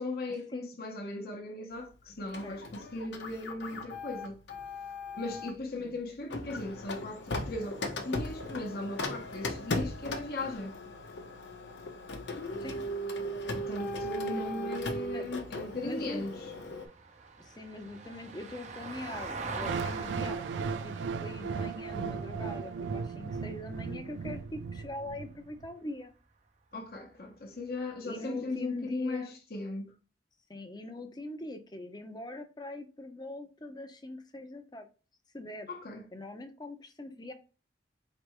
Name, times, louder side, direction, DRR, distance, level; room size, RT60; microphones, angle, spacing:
voice 1, 0.0-4.4 5.2-10.7 13.6-16.5 26.7-29.9 35.7-36.1, left 2 dB, 55° left, 0.9 m, -38 dB
Printer, 2.3-5.6 6.3-16.8, left 1 dB, 90° left, 0.8 m, -37 dB
Vehicle, 14.1-24.6 26.9-27.0, right 4 dB, 40° right, 0.6 m, -44 dB
voice 2, 15.8-16.2 17.4-20.9 21.2-26.1 28.1-29.4 30.5-34.9 35.3-35.7 36.1-37.3, left 2 dB, 25° left, 0.7 m, -42 dB
sound 1, 19.6-25.7, right 5 dB, 90° right, 0.3 m, -36 dB
4.6 x 3.3 x 3.0 m
head